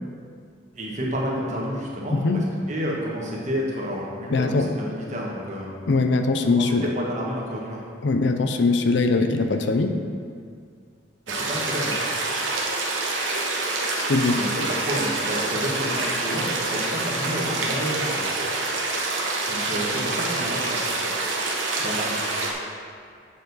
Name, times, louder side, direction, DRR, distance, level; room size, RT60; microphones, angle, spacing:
voice 1, 0.7-5.8 6.5-7.8 11.3-11.9 14.4-18.2 19.5-20.8 21.8-22.2, equal, 40° right, -3 dB, 1.3 m, -30 dB
voice 2, 2.1-2.4 4.3-4.7 5.9-6.9 8.0-9.9 14.1-14.4, left 3 dB, 70° left, 7 dB, 0.5 m, -21 dB
sound 1, 11.3-22.5, right 2 dB, 80° right, 1.1 m, -26 dB
7.3 x 6.8 x 4.0 m, 2.2 s
head